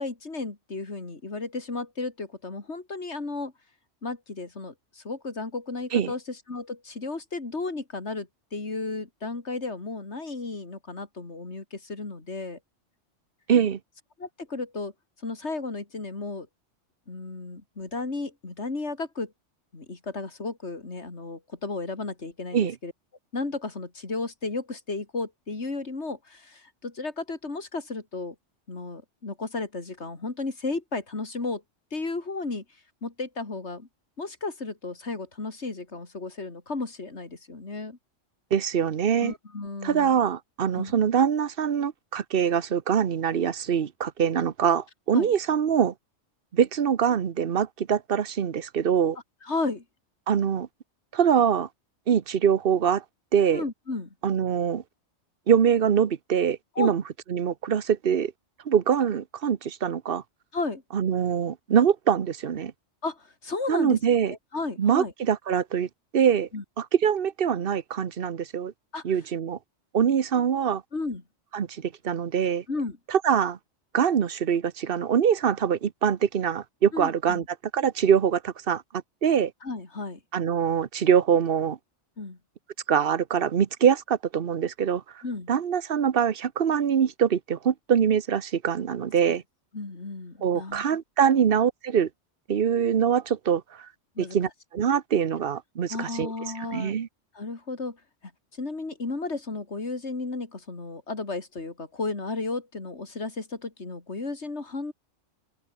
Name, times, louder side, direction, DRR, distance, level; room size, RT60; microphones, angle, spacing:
voice 1, 0.0-3.5 4.0-12.6 14.2-14.9 15.2-16.5 17.1-19.3 19.7-22.9 23.3-28.4 28.7-31.6 31.9-32.6 33.0-33.9 34.2-38.0 39.2-40.2 40.8-40.9 45.1-45.3 49.4-49.8 53.5-54.1 56.8-56.9 60.5-60.8 63.0-64.0 64.2-65.1 66.5-66.6 68.9-69.0 70.9-71.2 72.7-73.0 76.9-77.5 79.6-80.2 82.2-82.4 85.2-85.5 89.3-89.4 89.7-90.8 91.3-91.4 94.2-94.4 95.9-96.9 97.4-98.0 98.5-104.9, left 3 dB, 65° left, 3.5 m, -33 dB
voice 2, 13.5-13.8 22.5-22.8 38.5-39.3 39.8-45.9 46.5-49.2 50.3-50.7 51.1-51.7 52.1-53.0 53.3-53.6 54.2-54.8 55.5-57.0 57.3-58.3 58.6-60.2 60.9-62.7 63.7-64.3 64.8-65.9 66.1-66.5 66.8-68.7 69.0-69.6 69.9-70.8 71.5-72.6 73.1-73.6 73.9-77.4 77.7-78.8 79.2-79.5 80.3-81.8 82.9-85.2 85.5-89.4 90.4-92.1 92.5-93.9 94.2-96.3 96.6-97.1, right 8 dB, 50° right, 1.1 m, -24 dB
open air
omnidirectional pair, 1.2 m